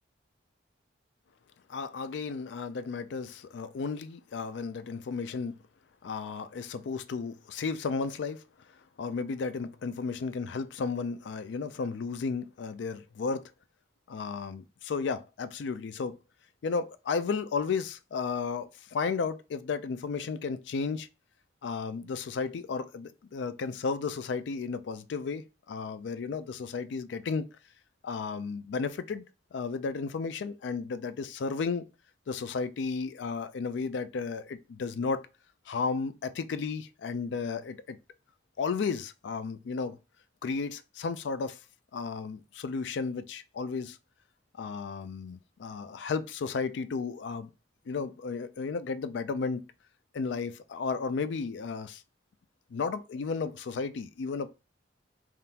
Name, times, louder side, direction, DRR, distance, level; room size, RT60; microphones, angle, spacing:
voice 1, 1.7-5.5 6.0-8.4 9.0-13.5 14.1-16.2 16.6-21.1 21.6-27.5 28.0-29.2 29.5-31.8 32.3-35.2 35.7-38.0 38.6-40.0 40.4-41.6 41.9-44.0 44.6-47.5 47.9-49.7 50.1-52.0 52.7-54.5, left 5 dB, 70° left, 0.4 m, -33 dB
3.6 x 2.4 x 2.7 m
head